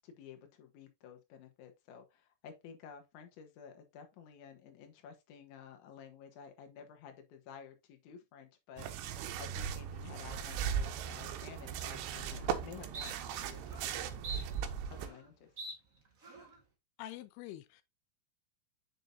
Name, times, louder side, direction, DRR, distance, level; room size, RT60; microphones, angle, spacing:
voice 1, 0.0-14.1 14.9-15.5, left 7 dB, 60° left, 2.4 m, -53 dB
sound 1, 8.8-15.1, right 8 dB, 85° right, 2.9 m, -38 dB
sound 2, 11.8-11.9 12.3-12.6 12.9-13.1 13.6-13.9 14.2-15.3 15.6-15.7 16.2-16.6, right 3 dB, 65° right, 0.8 m, -45 dB
voice 2, 17.0-17.8, left 14 dB, 85° left, 2.6 m, -46 dB
6.8 x 6.2 x 2.7 m
omnidirectional pair, 4.6 m